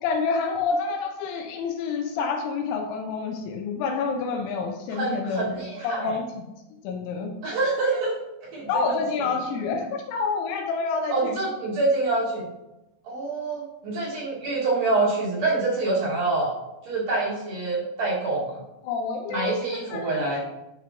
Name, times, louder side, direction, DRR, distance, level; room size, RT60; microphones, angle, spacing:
voice 1, 0.0-5.5 5.8-6.4 6.8-7.4 8.7-11.4 18.8-20.4, left 4 dB, 85° left, 3 dB, 3.0 m, -28 dB
voice 2, 4.9-6.2 7.4-8.2 8.5-8.7 11.1-12.5 13.0-16.5 16.8-18.6 19.3-20.4, right 3 dB, 55° right, -7 dB, 3.5 m, -26 dB
11.5 x 6.0 x 3.0 m, 0.96 s
omnidirectional pair, 5.5 m